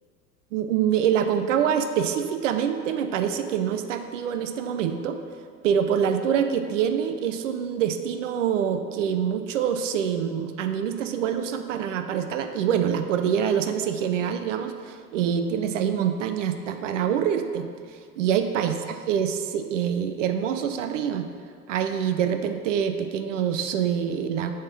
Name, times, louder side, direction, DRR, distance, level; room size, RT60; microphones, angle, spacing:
voice 1, 0.5-5.2 5.6-17.7 18.2-21.3 21.7-24.5, right 8 dB, 55° right, 7 dB, 0.5 m, -25 dB
6.4 x 3.6 x 5.6 m, 2.1 s
figure-of-eight pair, 80°, 45 cm